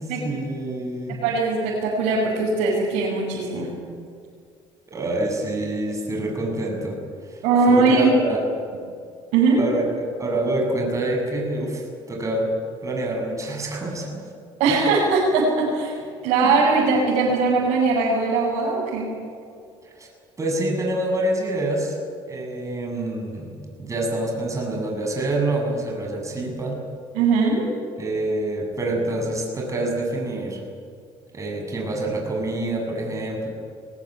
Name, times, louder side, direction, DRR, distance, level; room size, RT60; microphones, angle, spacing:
voice 1, 0.0-1.2 4.9-7.0 7.3-7.4 7.7-8.5 9.6-9.8 10.2-12.5 12.8-14.2 19.8-20.1 20.4-22.0 22.3-23.5 23.8-26.8 28.0-30.6 31.3-33.5, right 1 dB, 25° right, 1 dB, 7.6 m, -26 dB
voice 2, 1.1-3.7 7.4-8.1 9.3-9.6 14.6-16.0 16.2-19.1 27.1-27.6, right 4 dB, 85° right, -5 dB, 6.4 m, -20 dB
22.0 x 18.0 x 9.5 m, 2.2 s
cardioid pair, 100°, 12 cm